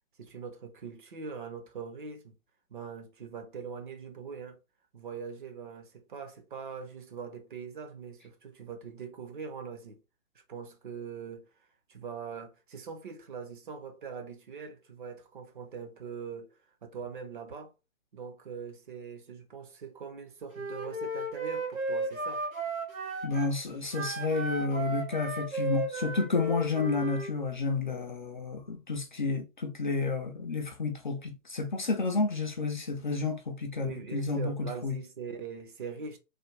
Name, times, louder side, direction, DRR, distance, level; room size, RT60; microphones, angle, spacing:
voice 1, 0.2-2.4 2.7-4.6 4.9-10.0 10.5-11.5 11.9-17.7 18.1-22.5 33.8-36.2, right 6 dB, 40° right, 0.6 m, -42 dB
Wind instrument woodwind instrument, 20.5-23.5 23.9-27.3, right 2 dB, 90° right, 1.3 m, -35 dB
voice 2, 23.2-35.0, left 3 dB, 40° left, 0.4 m, -31 dB
3.3 x 2.2 x 3.1 m
figure-of-eight pair, 135°, 41 cm